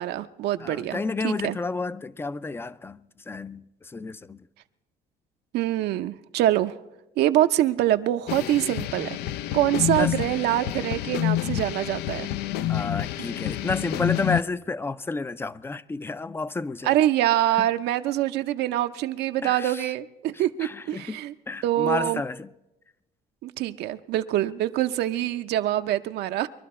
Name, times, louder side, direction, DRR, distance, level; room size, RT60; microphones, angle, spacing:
voice 1, 0.0-1.6 5.5-6.7 7.2-9.2 9.5-12.3 13.2-13.3 16.8-21.3 21.6-22.2 23.4-26.5, right 13 dB, 75° right, 0.6 m, -25 dB
voice 2, 0.6-4.4 10.0-10.6 12.7-17.0 17.6-17.7 19.4-19.9 20.6-21.2 21.5-22.5, left 3 dB, 15° left, 0.4 m, -31 dB
sound 1, 8.3-14.4, left 13 dB, 80° left, 0.4 m, -28 dB
22.5 x 12.0 x 4.3 m
cardioid pair, 110°, 17 cm